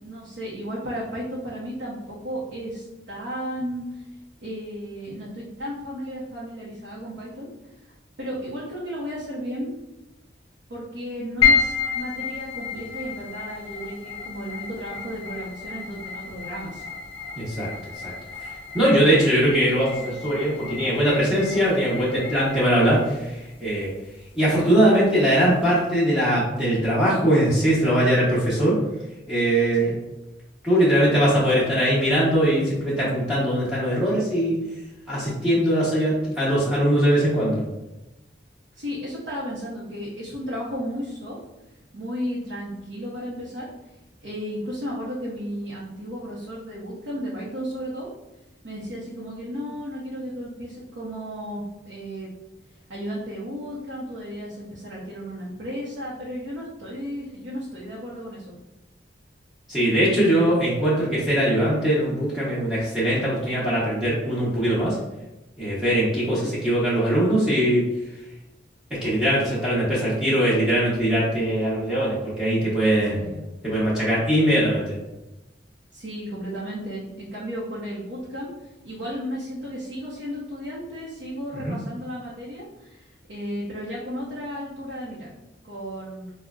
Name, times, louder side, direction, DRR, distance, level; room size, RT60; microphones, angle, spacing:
voice 1, 0.0-4.0 4.4-7.5 7.8-7.9 8.2-9.7 10.7-16.9 29.8-29.9 38.8-41.4 41.9-43.7 44.2-48.1 48.6-52.3 52.9-58.6 66.2-66.5 73.1-73.4 75.9-85.3 85.6-86.3, equal, 70° right, -6 dB, 0.7 m, -34 dB
sound 1, 11.4-25.9, left 6 dB, 30° left, 0.5 m, -30 dB
voice 2, 17.4-17.7 18.0-18.1 18.4-18.5 18.7-23.9 24.3-28.7 29.3-30.0 30.6-34.6 35.1-37.6 59.7-65.0 65.6-67.8 68.9-73.3 73.6-75.0 81.6-81.8, right 1 dB, 5° right, -10 dB, 0.8 m, -21 dB
4.9 x 2.1 x 2.3 m, 0.99 s
head